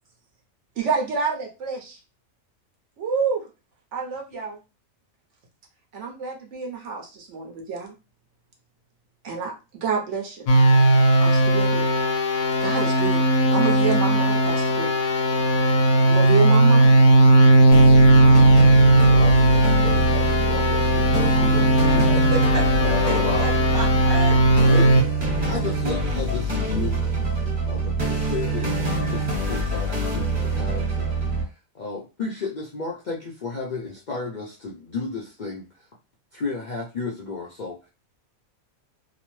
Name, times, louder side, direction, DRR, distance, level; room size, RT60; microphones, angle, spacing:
voice 1, 0.8-2.0 3.0-3.4 3.9-4.6 5.9-7.9 9.2-10.5 11.2-11.9 12.6-13.3 13.5-14.9 16.0-16.9, right 6 dB, 60° right, 1.1 m, -28 dB
sound 1, 10.5-25.0, right 1 dB, 80° left, 1.0 m, -17 dB
sound 2, 17.7-31.4, right 2 dB, 40° right, 1.3 m, -25 dB
voice 2, 19.1-22.1 22.8-23.5 24.6-24.9 25.4-27.1 27.7-35.7 36.3-37.8, left 4 dB, 60° left, 0.4 m, -33 dB
voice 3, 22.1-24.8, right 3 dB, 90° right, 1.2 m, -32 dB
2.9 x 2.0 x 3.0 m
omnidirectional pair, 1.4 m